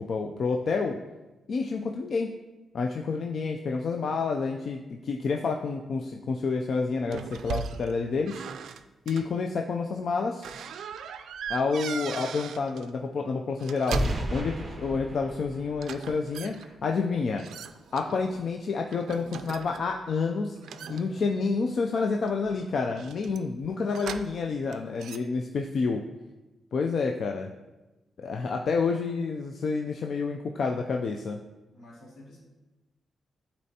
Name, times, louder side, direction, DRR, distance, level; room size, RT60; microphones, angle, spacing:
voice 1, 0.1-1.0 1.5-2.3 2.7-8.4 9.1-10.4 11.5-14.0 14.3-17.4 17.9-20.6 20.9-26.0 26.7-27.5 28.2-31.4, left 4 dB, 50° left, 3 dB, 0.4 m, -29 dB
sound 1, 7.1-7.9 8.3-9.3 10.4-12.9 13.5-14.3 15.8-16.7 17.4-18.5 18.9-20.0 20.6-21.6 22.1-24.5 24.7-25.2, right 7 dB, 90° right, 0.3 m, -39 dB
sound 2, 13.9-16.9, right 1 dB, 30° right, 0.7 m, -32 dB
voice 2, 20.8-21.5 31.7-32.4, left 1 dB, 75° left, -4 dB, 2.1 m, -47 dB
12.0 x 4.2 x 2.8 m, 1.1 s
wide cardioid pair, 180°, 0 cm